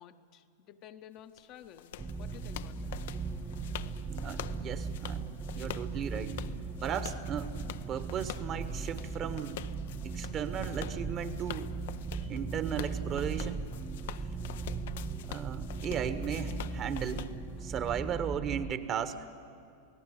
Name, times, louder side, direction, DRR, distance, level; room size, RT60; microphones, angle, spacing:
voice 1, 0.0-3.0, left 10 dB, 40° left, 7 dB, 1.0 m, -52 dB
sound 1, 1.4-17.9, left 12 dB, 55° left, 0.6 m, -46 dB
sound 2, 2.0-18.7, right 4 dB, 15° right, 0.9 m, -38 dB
voice 2, 4.1-5.2 5.6-6.4 6.8-7.6 7.9-9.6 10.0-11.7 12.3-13.6 15.3-17.3 17.6-19.2, right 8 dB, 30° right, 11 dB, 1.4 m, -36 dB
28.0 x 18.5 x 8.6 m, 2.4 s
figure-of-eight pair, 90°, 0 cm